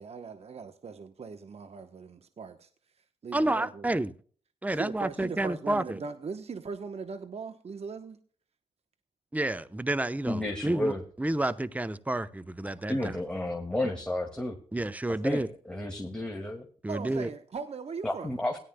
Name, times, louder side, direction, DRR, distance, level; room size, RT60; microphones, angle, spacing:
voice 1, 0.0-2.7 3.2-3.9 4.7-8.2 16.9-18.3, right 5 dB, 50° right, 1.0 m, -39 dB
voice 2, 3.3-4.1 4.6-6.0 9.3-10.9 11.2-13.2 14.7-15.5 16.8-17.3, right 1 dB, 10° right, 0.8 m, -30 dB
voice 3, 10.2-11.0 12.9-14.6 15.2-16.7 18.0-18.6, left 1 dB, 5° left, 2.0 m, -31 dB
17.5 x 11.0 x 2.2 m
supercardioid pair, 40°, 14 cm